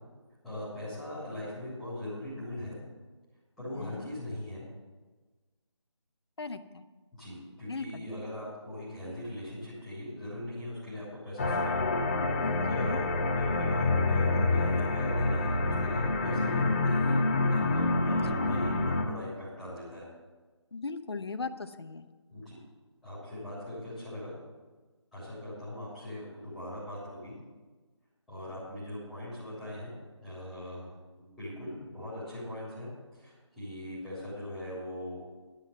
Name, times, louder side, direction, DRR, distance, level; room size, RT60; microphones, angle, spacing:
voice 1, 0.4-2.8 3.6-4.6 7.1-11.8 12.4-17.2 17.5-20.1 22.3-22.6 23.0-24.3 25.1-27.4 28.3-29.9 30.2-35.2, left 1 dB, ahead, -11 dB, 3.0 m, -40 dB
voice 2, 3.7-4.1 6.4-6.8 7.7-8.1 12.6-13.0 18.1-18.7 20.7-22.1, left 4 dB, 60° left, 10 dB, 0.8 m, -38 dB
sound 1, 11.4-19.0, left 2 dB, 25° left, 0.8 m, -27 dB
11.5 x 5.9 x 8.0 m, 1.3 s
figure-of-eight pair, 160°, 15 cm